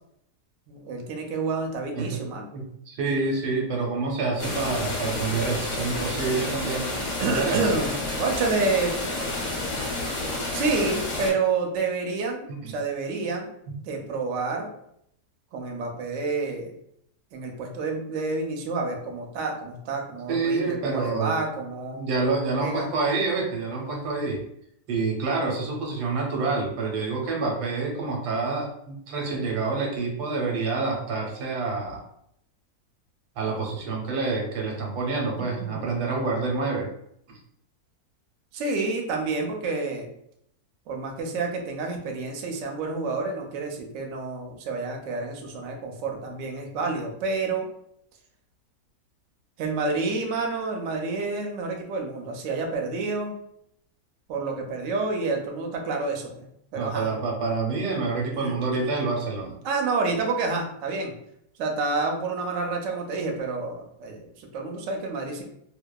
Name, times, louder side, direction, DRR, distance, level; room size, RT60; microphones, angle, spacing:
voice 1, 0.7-2.5 3.1-3.3 7.2-9.0 10.5-13.5 13.8-14.7 15.5-16.7 17.3-22.0 22.6-22.9 35.4-35.8 38.5-40.1 40.9-47.7 49.6-53.4 54.3-57.1 58.3-58.9 59.6-61.1 61.6-65.4, right 3 dB, 70° right, 2 dB, 0.8 m, -29 dB
voice 2, 2.5-6.9 7.2-7.7 12.6-12.7 20.3-21.4 21.9-24.4 24.9-32.0 33.4-36.9 56.8-59.6, right 3 dB, 90° right, 0 dB, 1.2 m, -27 dB
sound 1, 4.4-11.3, left 2 dB, 60° left, 0.9 m, -30 dB
2.7 x 2.1 x 2.2 m, 0.73 s
omnidirectional pair, 1.7 m